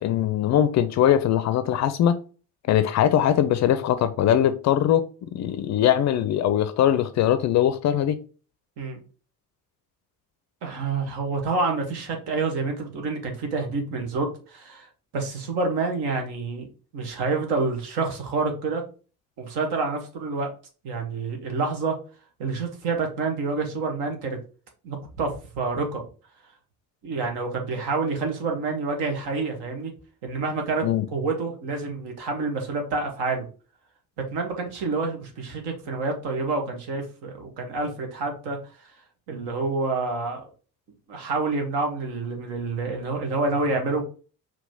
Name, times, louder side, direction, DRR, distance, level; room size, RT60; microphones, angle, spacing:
voice 1, 0.0-2.2 2.7-8.2 30.8-31.0, left 10 dB, 40° left, 0.5 m, -21 dB
voice 2, 10.6-14.9 15.1-16.7 16.9-18.8 19.4-20.5 20.8-22.0 22.4-24.4 24.8-26.0 27.0-29.9 30.2-33.5 34.3-38.6 39.3-40.5 41.1-44.0, right 3 dB, 60° right, 1.4 m, -28 dB
4.9 x 3.0 x 3.6 m
figure-of-eight pair, 45°, 46 cm